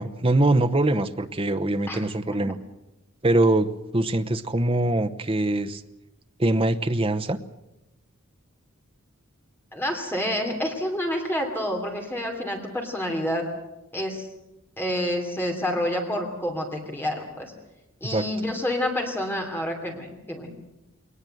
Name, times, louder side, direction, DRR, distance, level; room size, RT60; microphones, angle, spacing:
voice 1, 0.0-2.6 3.2-3.7 3.9-5.8 6.4-7.4 18.1-18.3, right 2 dB, 25° right, 8 dB, 0.9 m, -23 dB
voice 2, 9.7-13.4 13.9-14.3 14.8-17.5 18.0-20.5, left 1 dB, 10° left, 2 dB, 3.0 m, -28 dB
21.5 x 19.5 x 7.9 m, 0.94 s
head